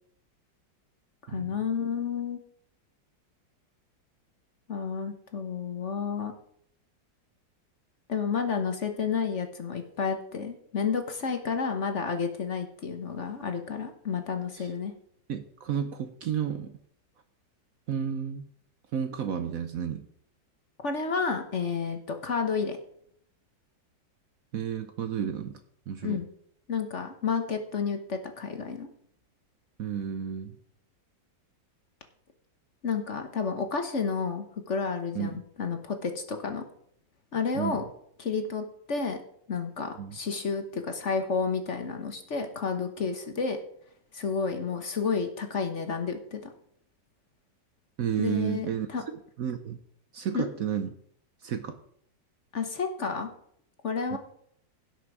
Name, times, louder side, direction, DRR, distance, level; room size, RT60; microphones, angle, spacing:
voice 1, 1.3-2.4 4.7-6.3 8.1-14.9 20.8-22.8 26.0-26.3 26.7-28.9 32.8-36.6 37.3-37.8 38.2-39.2 39.5-43.6 44.1-46.5 48.2-49.0 50.3-50.5 52.5-53.3 53.8-54.2, left 5 dB, 45° left, 6 dB, 1.3 m, -31 dB
voice 2, 15.3-16.7 17.9-18.4 18.9-20.0 24.5-25.6 25.9-26.2 29.8-30.6 35.1-35.4 37.5-37.8 40.0-40.2 48.0-48.9 49.4-49.8 50.1-50.9 51.4-51.8 54.1-54.2, right 8 dB, 60° right, 9 dB, 1.0 m, -31 dB
16.0 x 6.2 x 4.8 m, 0.67 s
omnidirectional pair, 2.0 m